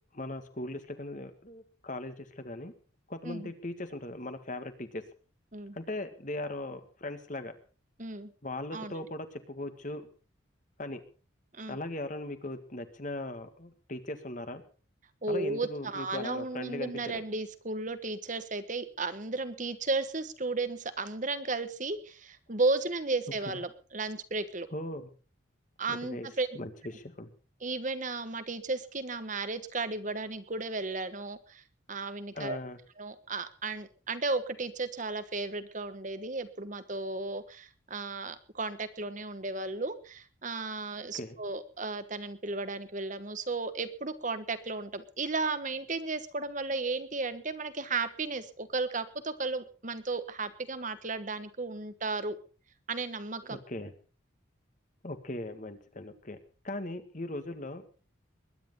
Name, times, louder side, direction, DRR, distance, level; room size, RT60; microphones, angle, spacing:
voice 1, 0.1-2.7 3.1-5.0 5.7-7.6 8.4-10.0 10.8-11.0 11.7-14.6 15.3-17.2 24.7-25.1 25.9-26.3 26.6-27.3 32.4-32.8 41.1-41.4 53.5-53.9 55.0-56.4 56.6-57.8, left 1 dB, 40° left, 9 dB, 1.8 m, -39 dB
voice 2, 8.0-8.3 8.7-9.1 11.5-11.8 15.2-24.7 25.8-26.5 27.6-31.6 31.9-32.6 33.0-52.4 52.9-53.6, right 3 dB, 40° right, 11 dB, 1.3 m, -34 dB
21.5 x 10.5 x 5.5 m, 0.39 s
head